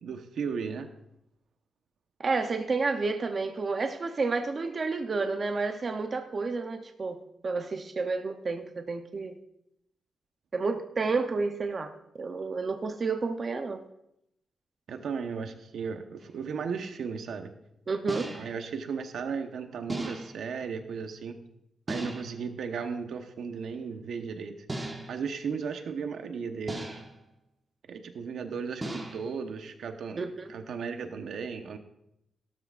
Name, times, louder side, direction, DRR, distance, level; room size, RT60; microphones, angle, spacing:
voice 1, 0.0-0.9 14.9-17.5 18.3-21.4 21.9-24.6 25.1-27.0 27.9-31.8, right 6 dB, 75° right, 6 dB, 1.0 m, -35 dB
voice 2, 2.2-7.2 7.4-9.4 10.5-11.9 12.2-13.8 17.9-18.3 30.2-30.5, right 4 dB, 35° right, 5 dB, 0.7 m, -30 dB
sound 1, 16.2-16.3 18.1-18.7 19.9-20.5 21.9-22.5 24.7-25.3 26.7-27.2 28.8-29.4, right 1 dB, 20° right, 1.2 m, -37 dB
16.5 x 12.5 x 2.5 m, 0.80 s
wide cardioid pair, 180°, 0 cm